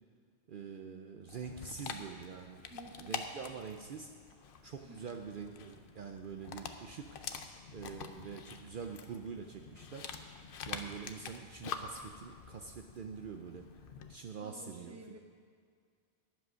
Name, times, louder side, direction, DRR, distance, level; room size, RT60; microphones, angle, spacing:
voice 1, 0.5-2.6 3.0-4.1 4.6-7.2 7.7-10.1 10.7-13.7 14.1-15.2, right 6 dB, 60° right, 4 dB, 0.7 m, -45 dB
Dog, 1.3-14.2, left 5 dB, 60° left, 0.8 m, -46 dB
voice 2, 2.7-3.2 4.8-5.0 14.4-15.2, right 2 dB, 15° right, 3 dB, 0.9 m, -52 dB
11.0 x 7.7 x 6.2 m, 2.1 s
omnidirectional pair, 1.1 m